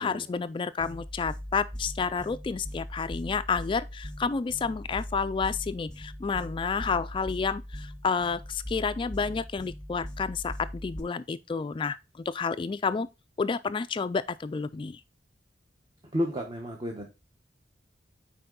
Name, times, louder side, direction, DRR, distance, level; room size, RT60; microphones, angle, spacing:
voice 1, 0.0-12.0 12.3-13.1 13.4-15.0, left 5 dB, 30° left, 0.3 m, -30 dB
sound 1, 0.8-11.0, equal, 5° left, 0.8 m, -40 dB
voice 2, 16.1-17.1, equal, 25° right, 1.0 m, -31 dB
5.7 x 4.7 x 3.8 m
head